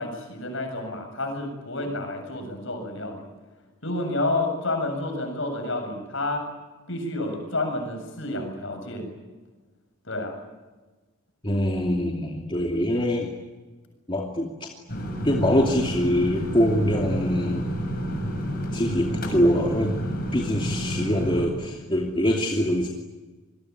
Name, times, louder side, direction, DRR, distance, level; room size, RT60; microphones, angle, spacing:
voice 1, 0.0-3.2 3.8-6.4 6.9-9.1 10.0-10.4, left 2 dB, 60° left, 5 dB, 7.6 m, -29 dB
voice 2, 11.4-13.3 14.1-14.7 15.2-17.7 18.7-19.9 20.3-22.9, equal, 20° left, 1 dB, 2.7 m, -24 dB
sound 1, 14.9-21.5, equal, 45° left, 7.0 m, -29 dB
27.0 x 21.5 x 9.8 m, 1.2 s
head